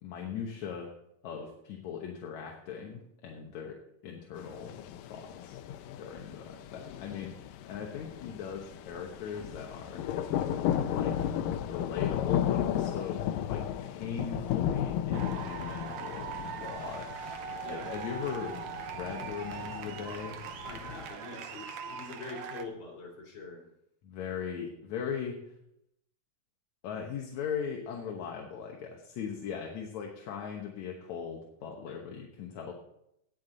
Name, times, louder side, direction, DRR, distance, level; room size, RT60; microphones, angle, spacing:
voice 1, 0.0-0.9 1.2-4.7 5.1-5.6 6.0-7.4 7.7-10.0 10.9-11.2 11.7-13.2 13.5-17.2 17.7-18.6 18.9-20.4 24.0-25.5 26.8-32.7, left 7 dB, 65° left, 1 dB, 2.3 m, -39 dB
sound 1, 4.4-21.1, left 10 dB, 90° left, 2.4 m, -35 dB
sound 2, 15.1-22.7, right 7 dB, 65° right, 1.9 m, -41 dB
voice 2, 20.6-23.6 31.9-32.0, left 3 dB, 50° left, -1 dB, 4.2 m, -44 dB
18.0 x 7.5 x 3.9 m, 0.79 s
omnidirectional pair, 3.9 m